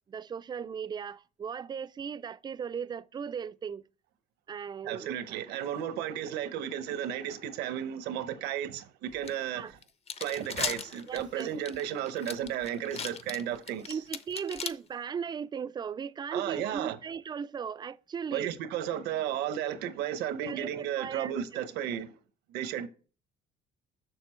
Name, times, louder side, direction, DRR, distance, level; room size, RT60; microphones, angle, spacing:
voice 1, 0.1-3.8 4.5-5.4 9.5-9.7 11.1-11.5 13.9-18.5 20.4-21.4, right 7 dB, 25° right, 0.3 m, -37 dB
voice 2, 4.8-9.8 10.2-14.0 16.3-17.0 18.3-22.1 22.5-22.9, right 10 dB, 90° right, 0.9 m, -34 dB
sound 1, 9.2-9.3 9.8-14.7, left 6 dB, 35° left, 0.7 m, -36 dB
6.7 x 6.7 x 4.4 m
cardioid pair, 110°, 17 cm